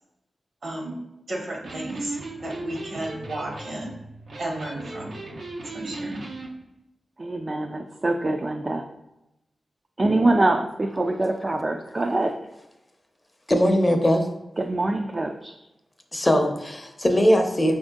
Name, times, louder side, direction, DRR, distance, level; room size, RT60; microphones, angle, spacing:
voice 1, 0.6-1.0 1.3-4.0 4.4-5.2 5.7-6.2, right 1 dB, 65° right, 0 dB, 1.2 m, -33 dB
Electric guitar, 1.5-6.5, right 2 dB, 85° right, 0.7 m, -37 dB
voice 2, 7.2-8.8 10.0-12.4 14.6-15.5, right 2 dB, 35° right, 3 dB, 0.3 m, -24 dB
voice 3, 13.5-14.3 16.1-17.8, equal, 20° left, 4 dB, 0.6 m, -20 dB
5.0 x 2.6 x 3.6 m, 0.91 s
wide cardioid pair, 75°, 0 cm